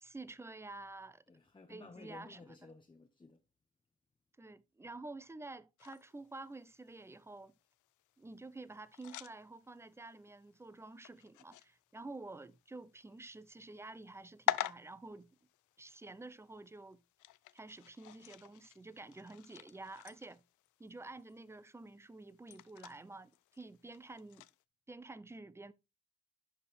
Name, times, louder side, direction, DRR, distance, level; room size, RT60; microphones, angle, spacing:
voice 1, 0.0-1.2 1.7-2.5 4.4-7.5 8.2-15.4 15.8-17.0 17.5-20.4 20.8-24.5 24.9-25.7, right 2 dB, 10° right, 0.5 m, -50 dB
voice 2, 1.3-3.4, left 3 dB, 15° left, 0.8 m, -55 dB
sound 1, 5.8-24.6, left 16 dB, 80° left, 0.5 m, -47 dB
11.0 x 4.3 x 3.4 m
cardioid pair, 90°, 30 cm